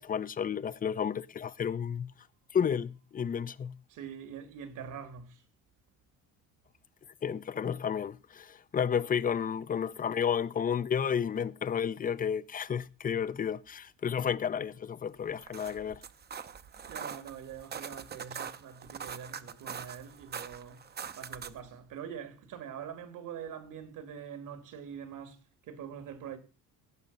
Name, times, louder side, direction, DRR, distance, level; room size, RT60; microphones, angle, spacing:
voice 1, 0.0-2.1 2.5-3.8 7.2-16.0, left 7 dB, 25° left, 0.5 m, -32 dB
voice 2, 3.9-5.4 16.8-20.8 21.1-26.4, right 8 dB, 70° right, 2.4 m, -44 dB
sound 1, 15.3-21.7, right 7 dB, 30° right, 0.8 m, -43 dB
16.5 x 5.6 x 5.4 m
cardioid pair, 115°, 33 cm